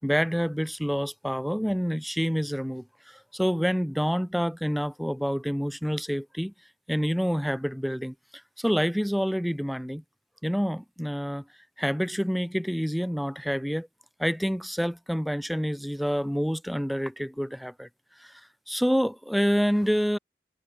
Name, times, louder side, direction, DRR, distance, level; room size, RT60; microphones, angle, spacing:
voice 1, 0.0-6.5 6.9-8.1 8.6-10.0 10.4-11.4 11.8-13.9 14.2-17.9 18.2-18.3 18.7-20.2, equal, ahead, 3.6 m, -27 dB
head